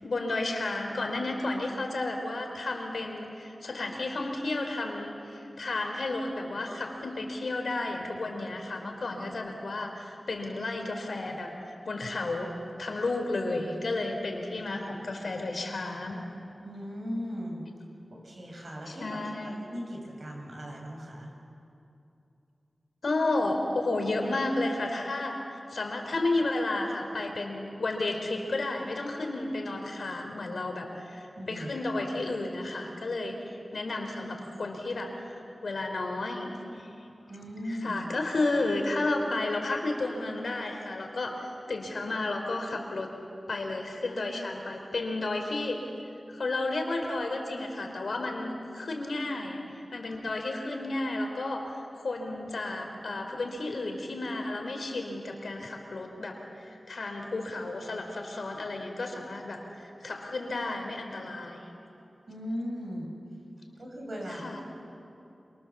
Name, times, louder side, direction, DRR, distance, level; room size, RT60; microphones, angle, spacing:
voice 1, 0.0-16.2 18.9-19.6 23.0-25.4 25.7-36.9 37.7-43.1 43.5-45.8 46.3-56.4 56.6-61.7 64.3-64.6, left 2 dB, 80° left, 3 dB, 3.8 m, -32 dB
voice 2, 16.6-17.7 18.1-21.3 31.3-31.7 37.3-38.1 62.3-63.1 63.8-64.6, equal, 65° right, 0 dB, 6.7 m, -38 dB
27.5 x 24.5 x 7.3 m, 2.7 s
wide cardioid pair, 65°, 0 cm